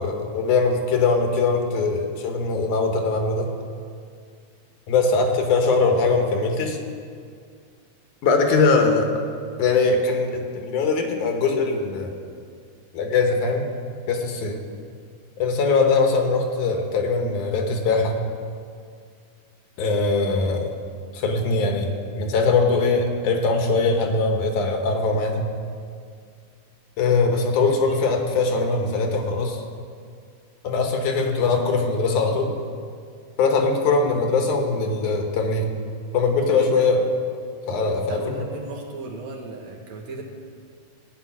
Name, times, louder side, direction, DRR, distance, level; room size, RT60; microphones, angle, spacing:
voice 1, 0.0-3.5 4.9-6.8 8.2-9.1 9.6-12.2 12.9-13.7 14.1-14.6 15.4-18.2 19.8-20.8 21.1-21.9 22.2-25.4 27.0-29.6 30.6-32.5 33.4-35.7 36.1-37.1 37.7-38.5, left 3 dB, 75° left, 4 dB, 2.6 m, -21 dB
voice 2, 36.5-36.9 38.1-40.2, right 2 dB, 65° right, 0 dB, 2.6 m, -36 dB
16.0 x 5.5 x 9.5 m, 2.2 s
omnidirectional pair, 3.6 m